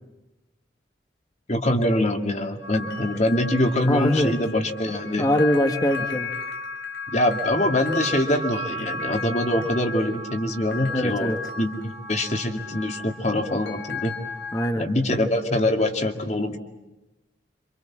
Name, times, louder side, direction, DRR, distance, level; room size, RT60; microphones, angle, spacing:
voice 1, 1.5-5.3 7.1-14.1 14.8-16.6, left 1 dB, 40° left, 4 dB, 2.3 m, -24 dB
sound 1, 2.6-14.7, left 3 dB, 75° left, 2.5 m, -34 dB
voice 2, 3.9-4.3 5.2-6.3 10.9-11.4 14.5-14.8, left 1 dB, 20° left, 5 dB, 1.5 m, -22 dB
28.0 x 26.0 x 7.5 m, 1.0 s
head